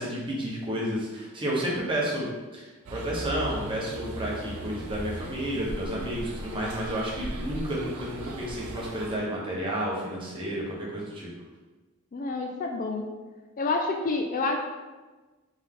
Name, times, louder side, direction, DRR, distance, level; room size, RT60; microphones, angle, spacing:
voice 1, 0.0-2.3 2.5-11.3, equal, 25° right, -5 dB, 1.1 m, -31 dB
sound 1, 2.9-9.2, right 1 dB, 90° right, 0.6 m, -38 dB
voice 2, 12.1-13.1 13.6-14.6, left 3 dB, 40° left, 2 dB, 0.4 m, -28 dB
3.9 x 3.5 x 3.7 m, 1.2 s
head